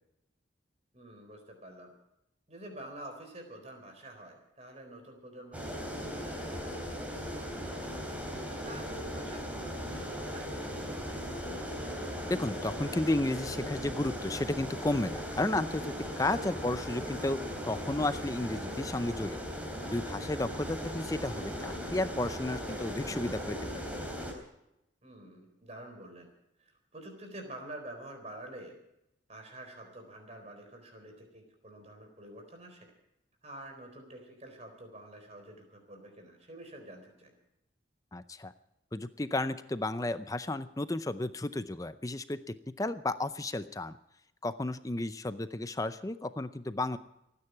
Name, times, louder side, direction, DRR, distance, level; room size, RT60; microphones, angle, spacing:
voice 1, 0.9-1.9 2.5-8.2 8.6-11.6 16.4-16.6 20.6-20.7 25.0-26.3 26.6-28.8 29.3-32.9 33.4-37.3, right 1 dB, 35° right, 4 dB, 4.2 m, -48 dB
sound 1, 5.5-24.3, equal, 10° right, 3.4 m, -38 dB
voice 2, 12.3-17.4 17.7-19.4 19.9-23.6 23.9-24.0 38.1-38.5 38.9-43.9 44.4-47.0, left 2 dB, 20° left, 12 dB, 0.5 m, -33 dB
29.5 x 9.9 x 4.6 m, 0.84 s
head